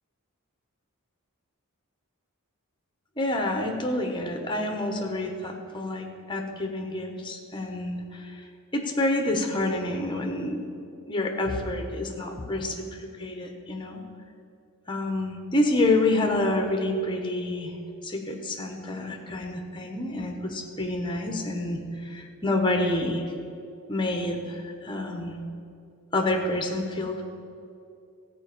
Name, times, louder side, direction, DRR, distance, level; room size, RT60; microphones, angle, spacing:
voice 1, 3.2-8.4 8.7-10.7 11.1-14.0 14.9-17.8 18.0-23.2 23.9-25.4 26.1-27.2, left 2 dB, 20° left, 4 dB, 1.2 m, -28 dB
14.0 x 5.3 x 8.7 m, 2.5 s
head